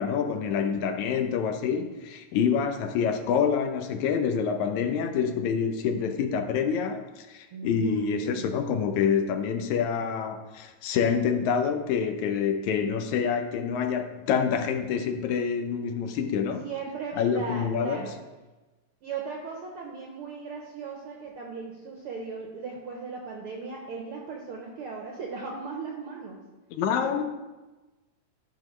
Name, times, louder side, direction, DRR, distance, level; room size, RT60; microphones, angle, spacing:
voice 1, 0.0-16.7 17.2-18.1 26.7-27.2, left 7 dB, 85° left, 7 dB, 2.0 m, -27 dB
voice 2, 7.5-8.5 16.6-18.1 19.0-26.4 27.0-27.2, right 4 dB, 75° right, 0 dB, 1.3 m, -37 dB
11.5 x 5.2 x 3.1 m, 1.1 s
omnidirectional pair, 3.3 m